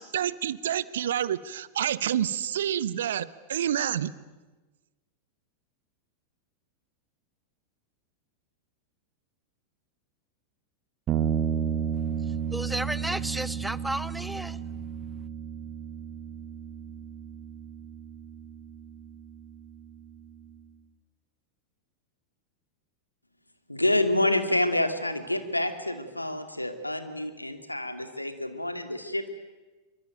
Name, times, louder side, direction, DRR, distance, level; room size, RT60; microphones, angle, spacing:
voice 1, 0.0-4.1, right 10 dB, 60° right, 1.0 m, -28 dB
sound 1, 11.1-20.6, right 8 dB, 30° right, 1.8 m, -33 dB
voice 2, 12.5-14.6, right 1 dB, 5° right, 0.8 m, -32 dB
voice 3, 23.7-29.3, left 1 dB, 85° left, 2.3 m, -28 dB
26.5 x 24.5 x 9.2 m
figure-of-eight pair, 90°, 0 cm